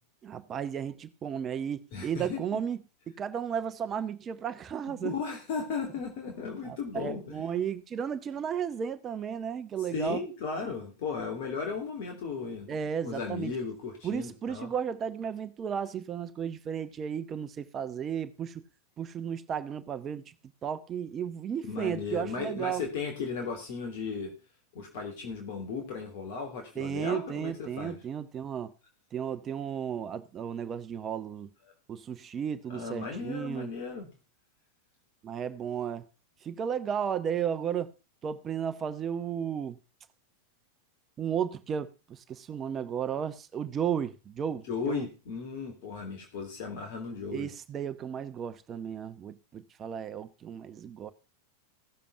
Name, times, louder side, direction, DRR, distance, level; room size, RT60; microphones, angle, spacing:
voice 1, 0.2-2.8 3.1-5.1 6.6-10.2 12.7-13.5 14.0-18.6 19.0-20.3 20.6-22.8 26.8-28.7 29.1-31.5 31.9-33.7 35.2-36.0 36.4-37.9 38.2-39.8 41.2-45.0 47.3-51.1, right 8 dB, 25° right, 0.9 m, -34 dB
voice 2, 1.9-2.6 5.0-7.4 9.8-12.7 13.0-14.7 21.7-24.3 24.7-28.0 32.7-34.1 44.7-47.5, left 5 dB, 50° left, 3.0 m, -36 dB
16.0 x 7.2 x 5.6 m
figure-of-eight pair, 90°, 0 cm